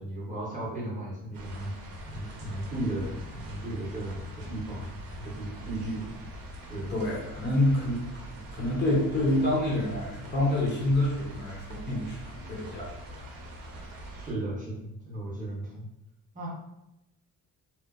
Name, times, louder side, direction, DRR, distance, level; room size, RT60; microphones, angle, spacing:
voice 1, 0.0-1.7 2.0-4.2 4.5-4.9 5.2-6.1 6.7-6.9 14.2-15.9 16.3-16.5, right 1 dB, 25° right, -6 dB, 0.6 m, -35 dB
sound 1, 1.3-14.3, right 1 dB, 75° right, 0.6 m, -43 dB
voice 2, 5.6-6.0 6.9-13.3 13.6-13.9, left 1 dB, 30° left, -5 dB, 0.5 m, -28 dB
2.8 x 2.1 x 2.3 m, 0.89 s
cardioid pair, 170°, 35 cm